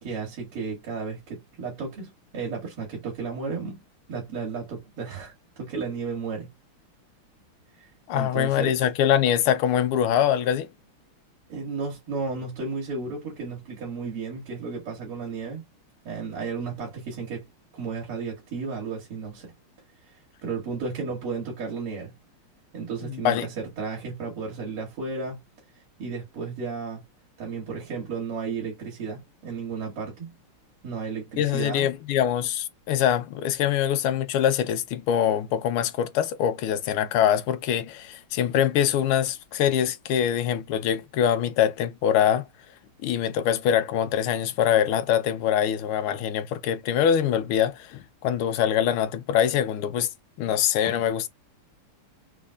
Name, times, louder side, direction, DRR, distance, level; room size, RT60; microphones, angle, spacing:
voice 1, 0.0-3.8 4.1-6.5 7.7-7.9 8.1-8.8 11.5-15.6 16.0-17.5 17.7-19.5 20.4-22.1 22.7-25.5 26.0-27.0 27.4-30.3 30.8-31.9, right 4 dB, 80° right, 3.0 m, -33 dB
voice 2, 8.1-10.7 23.0-23.5 31.4-42.4 43.0-50.1 50.4-51.3, left 9 dB, 80° left, 1.6 m, -24 dB
5.2 x 3.7 x 2.4 m
omnidirectional pair, 2.4 m